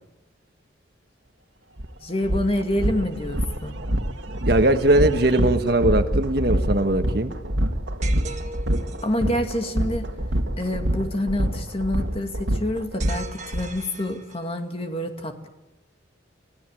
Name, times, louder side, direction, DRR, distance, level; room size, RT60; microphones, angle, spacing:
sound 1, 1.8-1.9 2.2-13.6, right 1 dB, 75° right, 2.1 m, -26 dB
voice 1, 2.0-3.7 9.0-10.1 10.6-15.5, left 1 dB, 30° left, 5 dB, 2.2 m, -27 dB
voice 2, 4.4-7.3, right 1 dB, 55° right, 7 dB, 1.4 m, -20 dB
sound 2, 8.0-9.2 13.0-14.6, right 3 dB, 40° right, 1.5 m, -39 dB
30.0 x 16.5 x 9.0 m, 1.0 s
head